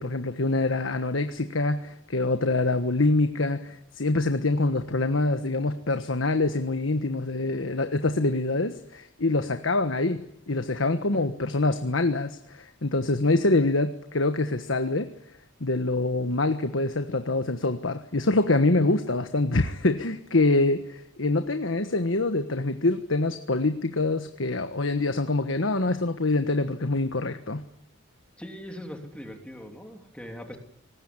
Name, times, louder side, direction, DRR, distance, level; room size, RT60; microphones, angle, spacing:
voice 1, 0.0-15.1 15.6-27.6, left 2 dB, 80° left, 8 dB, 1.4 m, -25 dB
voice 2, 28.4-30.6, equal, 5° left, 3 dB, 3.3 m, -40 dB
24.5 x 20.0 x 9.9 m, 0.75 s
head